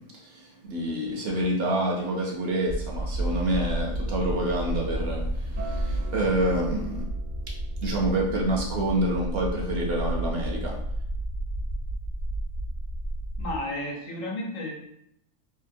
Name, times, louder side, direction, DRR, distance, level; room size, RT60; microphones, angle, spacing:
voice 1, 0.0-7.0 7.5-7.6 7.8-10.8, right 1 dB, 65° right, -1 dB, 0.7 m, -28 dB
sound 1, 2.7-13.6, right 1 dB, 55° left, 0.9 m, -31 dB
Acoustic guitar, 5.6-10.8, right 4 dB, 85° right, 1.0 m, -46 dB
voice 2, 13.4-14.7, left 1 dB, 85° left, -1 dB, 1.1 m, -32 dB
2.8 x 2.5 x 2.6 m, 0.76 s
omnidirectional pair, 1.3 m